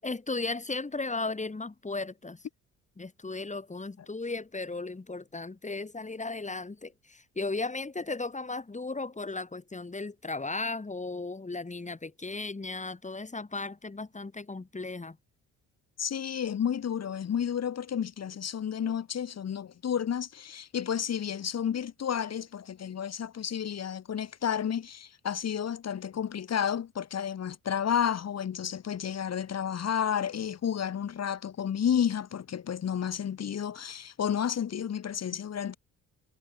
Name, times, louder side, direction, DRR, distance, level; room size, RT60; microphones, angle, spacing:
voice 1, 0.0-2.5 3.0-15.2, left 3 dB, 20° left, 5.5 m, -36 dB
voice 2, 16.0-35.8, left 8 dB, 50° left, 2.3 m, -31 dB
supercardioid pair, 70°, 34 cm